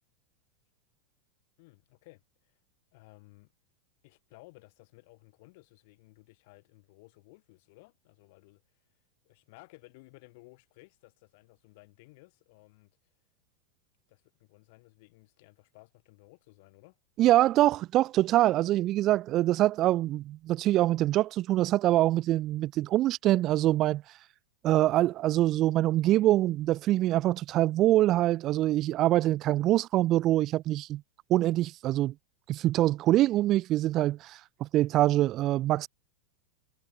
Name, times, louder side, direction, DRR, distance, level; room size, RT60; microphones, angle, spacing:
voice 1, 1.6-2.6 2.9-3.5 4.0-8.6 9.2-12.9 14.1-17.0, left 25 dB, 50° left, 7.7 m, -57 dB
voice 2, 17.2-24.2 24.6-31.0 31.3-32.1 32.5-35.9, right 15 dB, 35° right, 0.5 m, -24 dB
figure-of-eight pair, 90°, 0 cm